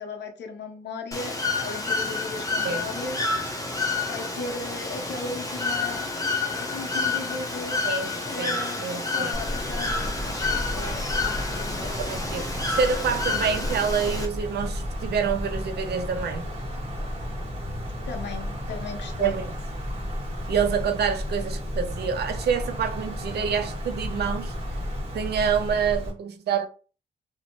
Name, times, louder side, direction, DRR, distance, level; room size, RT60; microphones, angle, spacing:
voice 1, 0.0-3.3 4.1-6.1 6.7-7.8 8.3-8.8 9.1-12.0 18.1-19.4, left 3 dB, 75° left, 0.6 m, -36 dB
Bird / Water, 1.1-14.3, left 3 dB, 20° left, 0.6 m, -29 dB
voice 2, 8.4-9.3 12.0-16.4 19.2-19.5 20.5-24.5 25.1-26.7, right 6 dB, 65° right, 0.5 m, -27 dB
Wind, 9.3-26.1, equal, 35° right, 1.2 m, -32 dB
2.5 x 2.1 x 2.9 m
cardioid pair, 75°, 18 cm